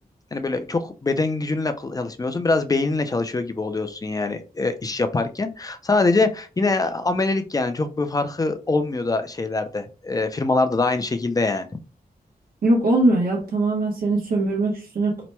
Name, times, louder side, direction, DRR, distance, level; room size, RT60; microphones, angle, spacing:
voice 1, 0.3-11.7, left 3 dB, 25° left, 0.4 m, -24 dB
voice 2, 12.6-15.3, right 2 dB, 75° right, 0.9 m, -21 dB
2.9 x 2.1 x 3.1 m
wide cardioid pair, 110°, 15 cm